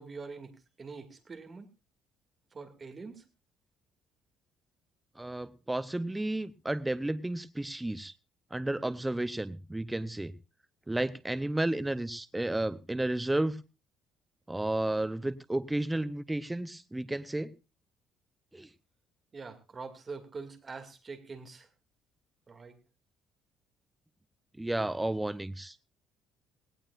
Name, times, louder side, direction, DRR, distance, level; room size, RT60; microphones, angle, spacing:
voice 1, 0.0-1.7 2.5-3.2 19.3-21.7 22.5-22.8, right 4 dB, 25° right, 6 dB, 2.4 m, -44 dB
voice 2, 5.2-8.1 8.5-10.3 10.9-13.6 14.5-17.5 18.5-18.7 24.6-25.7, right 1 dB, 5° right, 13 dB, 0.7 m, -32 dB
18.0 x 17.5 x 2.5 m, 0.29 s
cardioid pair, 150°, 0 cm